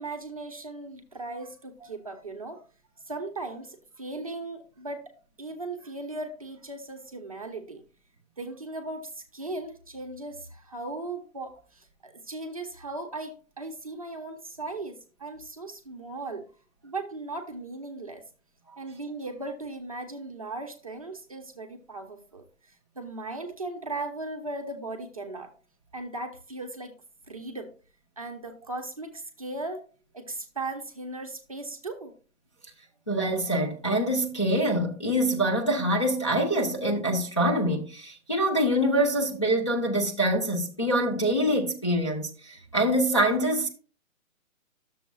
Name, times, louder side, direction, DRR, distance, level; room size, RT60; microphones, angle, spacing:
voice 1, 0.0-2.6 3.0-5.1 5.4-7.8 8.4-16.5 16.8-18.2 18.8-25.5 25.9-26.9 27.3-27.7 28.2-29.8 30.1-32.1, right 2 dB, 25° right, 0.6 m, -37 dB
voice 2, 33.1-43.7, right 1 dB, 20° left, 0.5 m, -25 dB
11.0 x 6.9 x 2.3 m
hypercardioid pair, 165°, 42 cm